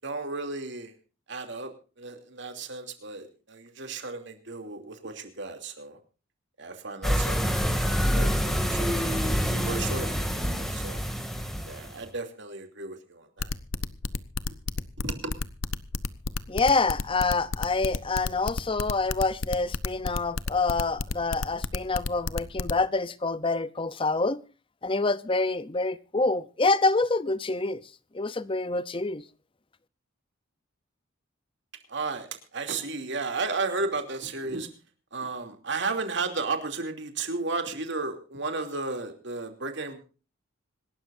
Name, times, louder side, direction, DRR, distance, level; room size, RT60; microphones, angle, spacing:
voice 1, 0.0-0.9 1.3-1.7 2.0-6.0 6.6-7.6 8.0-9.0 9.2-9.4 9.6-11.0 11.7-13.5 15.0-15.3 31.9-34.7 35.1-40.0, right 3 dB, 60° right, 2.8 m, -34 dB
sound 1, 7.0-12.0, equal, ahead, 2.4 m, -27 dB
sound 2, 13.4-22.7, left 4 dB, 80° left, 0.8 m, -30 dB
voice 2, 16.5-24.4 24.8-27.8 28.1-29.2, left 3 dB, 25° left, 0.6 m, -26 dB
26.0 x 13.0 x 2.6 m
head